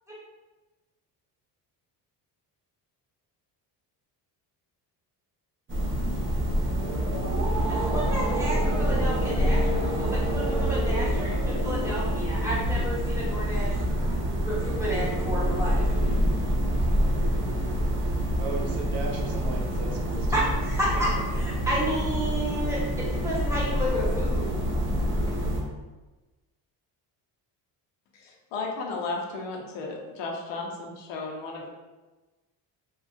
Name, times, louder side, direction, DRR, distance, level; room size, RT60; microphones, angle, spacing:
sound 1, 5.7-25.6, equal, 30° right, 0.5 m, -26 dB
voice 1, 7.6-13.7 14.4-15.8 20.3-21.1 21.7-24.5, equal, 5° right, -7 dB, 0.9 m, -31 dB
voice 2, 18.4-20.5 20.9-21.0, right 3 dB, 65° right, 0 dB, 0.7 m, -36 dB
voice 3, 28.1-31.7, left 3 dB, 80° left, 1 dB, 0.7 m, -34 dB
2.9 x 2.3 x 2.6 m, 1.2 s
cardioid pair, 125°, 44 cm